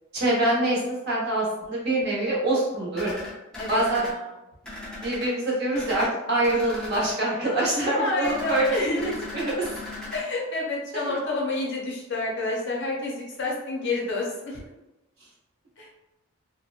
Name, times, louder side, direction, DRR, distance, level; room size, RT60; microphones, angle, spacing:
voice 1, 0.1-3.1 3.7-4.1 5.0-9.0 9.3-9.7 10.9-11.1, right 1 dB, 50° right, -6 dB, 0.8 m, -25 dB
sound 1, 2.9-4.1 4.6-5.3 5.7-6.1 6.4-7.1 8.2-10.2, left 2 dB, 5° left, 0.5 m, -38 dB
voice 2, 3.6-4.3 8.0-9.3 10.1-14.6 15.8-15.9, left 2 dB, 55° left, -2 dB, 0.6 m, -29 dB
2.7 x 2.1 x 2.4 m, 0.97 s
head